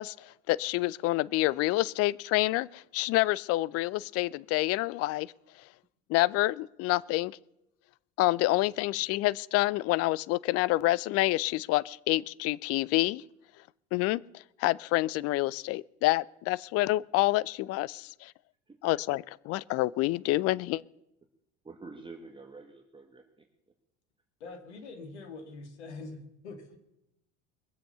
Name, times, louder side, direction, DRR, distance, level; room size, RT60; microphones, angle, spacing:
voice 1, 0.0-5.3 6.1-7.4 8.2-13.2 13.9-18.3 18.8-20.8, left 18 dB, 45° left, 22 dB, 0.5 m, -28 dB
voice 2, 21.6-23.4, right 3 dB, 15° right, 3 dB, 1.6 m, -48 dB
voice 3, 24.4-26.8, left 3 dB, 80° left, 7 dB, 2.1 m, -44 dB
21.5 x 7.7 x 6.8 m, 0.88 s
hypercardioid pair, 70°, 33 cm